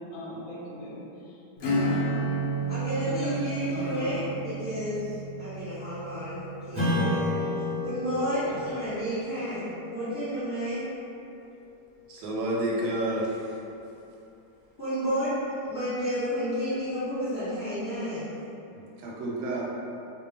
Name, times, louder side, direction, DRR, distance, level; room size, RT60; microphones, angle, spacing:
voice 1, 0.1-1.0 1.7-2.2 3.0-3.3 3.6-4.1 8.7-8.8, left 1 dB, 65° left, -7 dB, 0.9 m, -38 dB
Acoustic guitar / Strum, 1.6-7.8, right 2 dB, 85° left, 0.6 m, -32 dB
voice 2, 2.7-7.4 7.8-10.8 14.8-15.3 15.6-18.3, equal, 30° left, -16 dB, 1.1 m, -31 dB
Strum, 6.7-11.7, left 1 dB, 40° right, 0.4 m, -32 dB
voice 3, 12.1-13.2 19.0-19.7, right 1 dB, 80° right, -4 dB, 1.2 m, -29 dB
2.8 x 2.0 x 3.1 m, 2.7 s
omnidirectional pair, 1.8 m